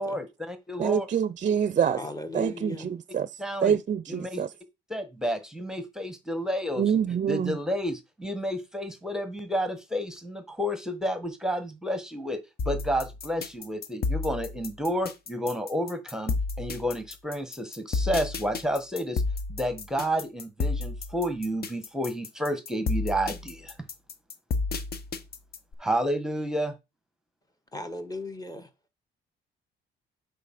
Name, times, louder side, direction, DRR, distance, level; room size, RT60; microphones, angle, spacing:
voice 1, 0.0-1.1 3.4-3.8 4.1-4.4 4.9-6.9 7.3-12.4 12.6-19.2 19.5-23.7 25.8-26.8, equal, 5° right, 1.2 m, -30 dB
voice 2, 0.8-2.0 2.3-3.3 3.6-4.5 6.8-7.6, right 8 dB, 40° right, 0.5 m, -26 dB
voice 3, 1.9-2.9 27.7-28.7, left 2 dB, 20° left, 1.4 m, -37 dB
sound 1, 12.6-25.7, left 3 dB, 50° left, 1.1 m, -31 dB
8.3 x 3.7 x 5.8 m
cardioid pair, 90°, 20 cm